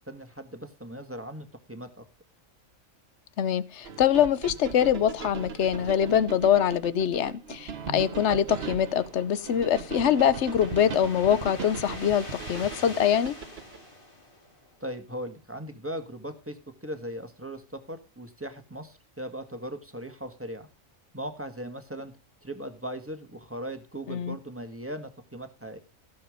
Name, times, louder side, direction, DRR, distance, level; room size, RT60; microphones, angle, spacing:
voice 1, 0.1-2.0 14.8-20.7 21.1-22.1 22.4-25.8, right 1 dB, 10° right, 1.6 m, -38 dB
voice 2, 3.4-13.3 24.1-24.4, left 9 dB, 60° left, 1.1 m, -24 dB
sound 1, 3.8-13.8, right 6 dB, 50° right, 1.2 m, -39 dB
sound 2, 8.6-14.9, left 2 dB, 40° left, 3.1 m, -45 dB
15.5 x 7.3 x 5.1 m
omnidirectional pair, 1.4 m